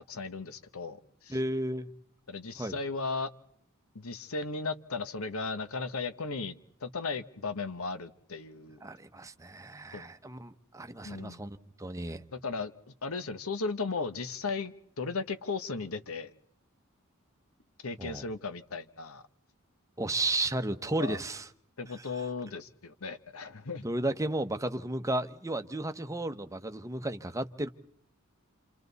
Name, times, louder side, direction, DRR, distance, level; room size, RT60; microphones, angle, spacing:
voice 1, 0.0-1.4 2.3-3.3 3.9-6.5 6.8-8.8 9.9-10.1 11.0-11.4 12.3-16.3 17.8-19.2 21.0-21.2 21.8-23.8, left 4 dB, 85° left, 1.1 m, -36 dB
voice 2, 1.3-1.9 2.6-2.8 8.8-12.2 18.0-18.3 20.0-21.5 22.0-22.1 23.8-27.7, right 2 dB, 15° right, 0.8 m, -33 dB
29.0 x 27.0 x 4.1 m
head